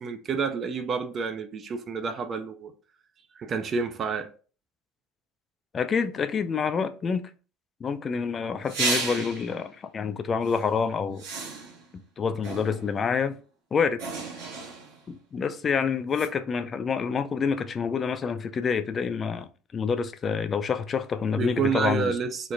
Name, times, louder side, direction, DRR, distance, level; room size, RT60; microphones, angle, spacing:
voice 1, 0.0-2.7 3.3-4.3 21.4-22.5, right 5 dB, 40° right, 0.4 m, -29 dB
voice 2, 5.7-7.3 7.8-11.2 12.2-13.4 13.7-14.0 15.1-19.5 19.7-22.1, left 6 dB, 35° left, 0.4 m, -27 dB
sound 1, 8.7-9.6 10.5-10.6 11.2-11.9 12.4-13.0 14.0-15.0 16.1-16.3, right 3 dB, 75° right, 0.9 m, -32 dB
3.2 x 2.1 x 3.8 m
hypercardioid pair, 70°, 0 cm